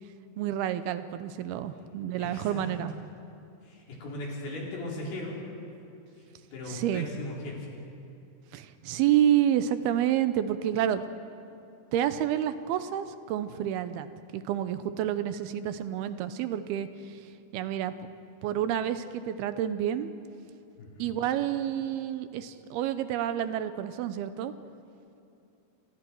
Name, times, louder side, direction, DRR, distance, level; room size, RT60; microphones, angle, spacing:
voice 1, 0.4-2.9 6.7-7.1 8.5-11.0 11.9-14.1 14.3-16.9 17.5-17.9 18.4-20.1 21.0-24.5, right 11 dB, 90° right, 11 dB, 2.8 m, -29 dB
voice 2, 2.2-2.8 3.6-5.4 6.2-7.7 20.8-21.1, left 1 dB, 80° left, -4 dB, 6.2 m, -38 dB
29.5 x 25.5 x 4.7 m, 2.7 s
omnidirectional pair, 4.5 m